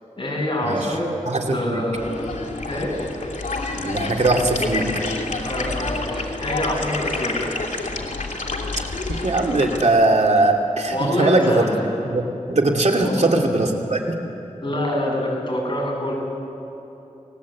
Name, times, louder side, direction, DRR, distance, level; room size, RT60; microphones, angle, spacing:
voice 1, 0.2-1.1 1.5-2.2 2.7-3.0 5.4-7.5 10.9-11.8 13.0-13.2 14.6-16.1, left 1 dB, 40° left, -1 dB, 7.5 m, -25 dB
voice 2, 1.3-1.8 3.8-4.9 9.1-11.6 12.0-12.2 12.5-14.1, right 2 dB, 60° right, 2 dB, 2.6 m, -20 dB
sound 1, 1.9-9.8, left 3 dB, 80° left, 2.6 m, -28 dB
29.5 x 19.5 x 8.5 m, 3.0 s
wide cardioid pair, 80°, 13 cm